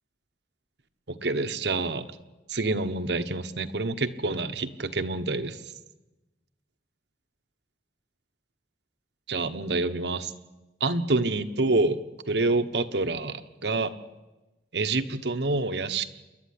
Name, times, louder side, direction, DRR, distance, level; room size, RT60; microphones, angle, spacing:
voice 1, 1.1-2.1 2.5-5.6 9.3-10.3 10.8-12.0 12.3-13.9 14.7-16.1, right 3 dB, 70° right, 10 dB, 1.2 m, -27 dB
28.0 x 11.5 x 9.8 m, 1.1 s
head